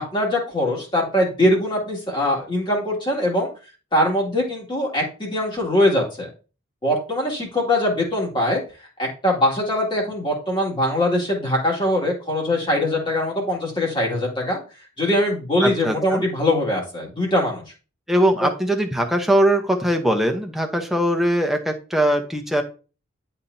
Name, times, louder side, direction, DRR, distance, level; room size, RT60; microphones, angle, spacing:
voice 1, 0.0-3.5 3.9-6.3 6.8-8.6 9.0-14.6 15.0-17.6 18.4-18.5, left 1 dB, 25° left, -1 dB, 2.2 m, -22 dB
voice 2, 15.6-16.2 18.1-22.6, equal, ahead, 3 dB, 0.9 m, -21 dB
10.5 x 4.2 x 2.7 m, 0.34 s
head